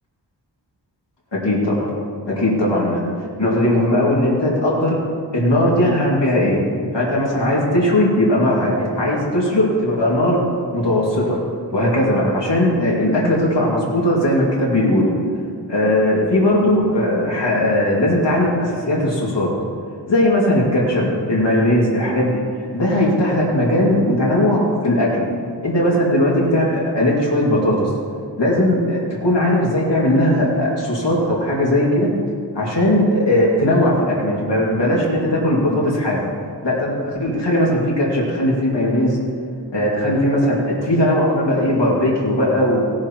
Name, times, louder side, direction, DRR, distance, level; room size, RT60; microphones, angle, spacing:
voice 1, 1.3-1.9 2.3-3.0 3.4-5.0 5.3-6.6 6.9-10.4 10.7-11.4 11.7-15.1 15.7-19.5 20.1-22.4 22.7-25.2 25.6-27.9 28.4-32.1 32.5-36.2 36.6-39.2 39.7-42.8, left 1 dB, 75° left, -5 dB, 2.4 m, -18 dB
18.0 x 10.5 x 3.0 m, 2.1 s
wide cardioid pair, 70°, 42 cm